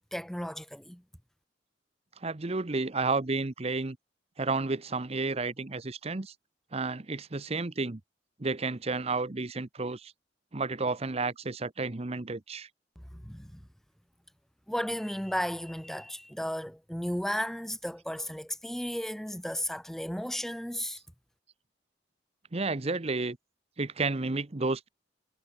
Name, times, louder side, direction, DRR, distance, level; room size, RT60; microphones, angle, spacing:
voice 1, 0.1-1.0 13.1-13.6 14.7-21.0, equal, ahead, 0.7 m, -34 dB
voice 2, 2.2-4.0 4.4-6.3 6.7-8.0 8.4-10.1 10.5-12.7 22.5-23.4 23.8-24.9, right 3 dB, 35° right, 0.9 m, -31 dB
head